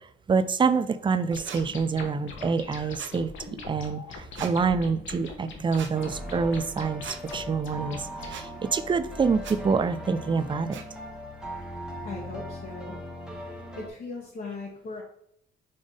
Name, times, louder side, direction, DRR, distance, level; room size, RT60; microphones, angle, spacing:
voice 1, 0.0-10.8, right 5 dB, 25° right, 12 dB, 0.4 m, -27 dB
sound 1, 1.3-8.4, left 3 dB, 75° left, 1.3 m, -42 dB
sound 2, 1.5-1.6 3.0-3.2 4.4-4.5 5.8-5.9 7.0-7.2 8.3-8.5 9.4-9.6 10.7-10.9, right 7 dB, 70° right, 0.8 m, -40 dB
sound 3, 5.9-13.9, equal, 5° right, 1.2 m, -39 dB
voice 2, 12.0-13.1 13.4-15.0, left 3 dB, 50° left, -3 dB, 1.3 m, -39 dB
5.3 x 3.5 x 5.3 m, 0.72 s
cardioid pair, 115°, 20 cm